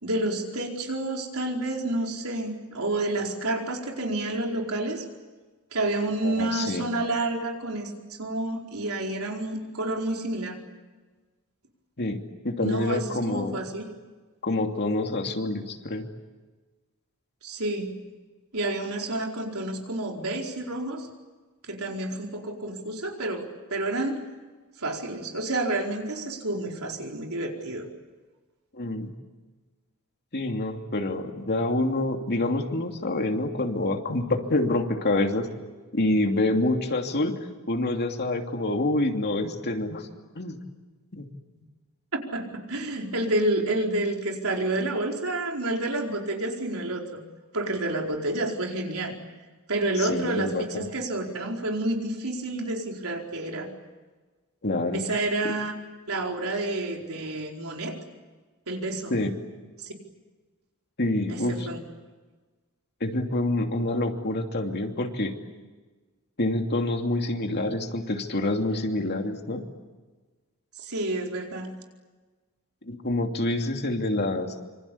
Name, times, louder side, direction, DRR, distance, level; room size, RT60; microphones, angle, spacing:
voice 1, 0.0-5.0 5.7-10.6 12.6-13.8 17.4-17.9 18.5-21.1 21.6-23.4 23.7-24.2 24.8-27.9 41.6-41.7 42.3-47.2 47.5-49.2 49.7-53.7 54.9-55.7 56.1-58.0 58.7-59.2 59.8-59.9 61.3-61.8 70.8-71.7, right 2 dB, 70° right, 1 dB, 4.7 m, -29 dB
voice 2, 6.2-6.8 12.0-13.6 14.4-16.1 28.7-29.1 30.3-35.5 35.9-37.3 37.7-40.0 40.3-40.6 41.1-41.3 50.0-50.8 54.6-55.0 59.1-59.3 61.0-61.7 63.0-65.3 66.4-69.6 72.9-74.5, left 2 dB, 50° left, 4 dB, 2.8 m, -27 dB
26.5 x 26.0 x 8.6 m, 1.3 s
head